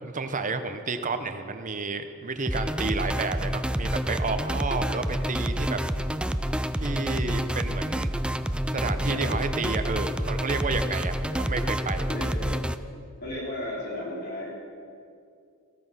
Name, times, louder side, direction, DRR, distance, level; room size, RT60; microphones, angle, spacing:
voice 1, 0.0-5.8 6.7-8.1 8.7-12.1, right 3 dB, 35° right, 9 dB, 0.9 m, -31 dB
sound 1, 2.5-12.7, equal, 5° right, 0.4 m, -28 dB
voice 2, 9.0-9.4 11.2-11.5 12.1-12.6 13.2-14.5, left 1 dB, 50° left, -5 dB, 4.3 m, -35 dB
15.5 x 13.0 x 5.8 m, 2.4 s
head